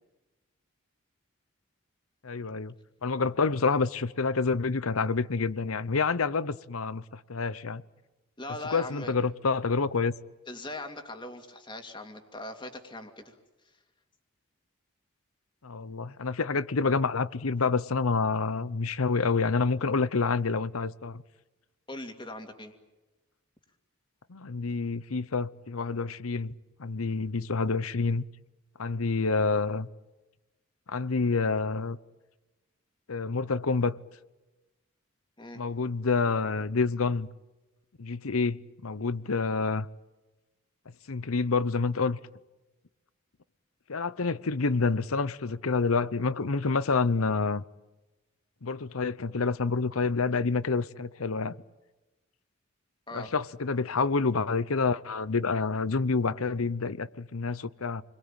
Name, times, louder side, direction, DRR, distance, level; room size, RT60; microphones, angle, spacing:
voice 1, 2.2-2.7 3.0-7.8 8.7-10.1 15.6-21.2 24.3-26.5 26.8-28.2 28.8-29.9 30.9-32.0 33.1-34.0 35.5-37.3 38.0-39.9 41.1-42.2 43.9-47.6 48.6-51.5 53.1-58.0, left 4 dB, 90° left, 0.8 m, -28 dB
voice 2, 8.4-9.1 10.5-13.4 21.9-22.7 35.4-35.6 53.1-53.3, left 2 dB, 20° left, 2.6 m, -40 dB
29.0 x 22.0 x 9.0 m
head